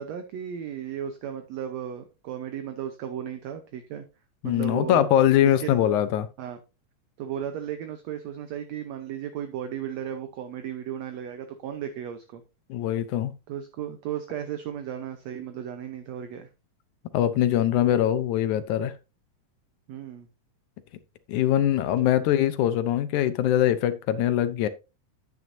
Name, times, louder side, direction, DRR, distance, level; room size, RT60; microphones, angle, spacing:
voice 1, 0.0-4.1 4.4-5.1 5.6-5.8 6.4-6.6 7.2-12.4 13.5-16.5 19.9-20.3 21.6-22.1, right 9 dB, 70° right, 1.9 m, -35 dB
voice 2, 4.4-6.3 12.7-13.3 17.1-18.9 21.3-24.7, left 11 dB, 80° left, 2.0 m, -22 dB
9.7 x 9.2 x 2.7 m
omnidirectional pair, 3.6 m